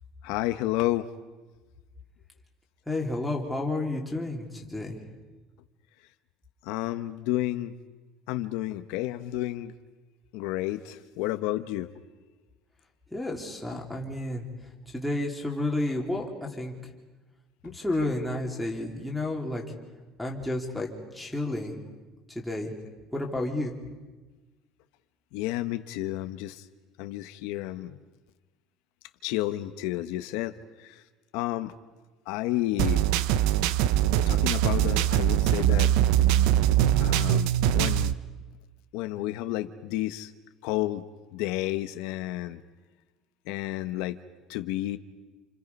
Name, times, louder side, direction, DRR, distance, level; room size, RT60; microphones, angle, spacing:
voice 1, 0.2-1.1 6.6-7.7 8.3-9.7 10.3-11.9 13.7-13.8 17.6-17.7 25.3-26.7 27.0-28.0 29.2-31.0 31.3-31.7 32.3-33.0 34.3-35.9 37.0-38.2 38.9-40.3 40.6-41.0 41.3-42.6 43.5-44.2 44.5-45.0, left 16 dB, 80° left, 9 dB, 1.0 m, -31 dB
voice 2, 2.9-5.0 13.1-14.4 14.9-16.7 17.6-19.6 20.2-20.9 21.1-21.8 22.3-22.7 23.1-23.7, left 2 dB, ahead, -2 dB, 3.0 m, -31 dB
sound 1, 32.8-38.1, right 12 dB, 75° right, 0.7 m, -22 dB
29.0 x 28.0 x 5.4 m, 1.3 s
cardioid pair, 175°, 0 cm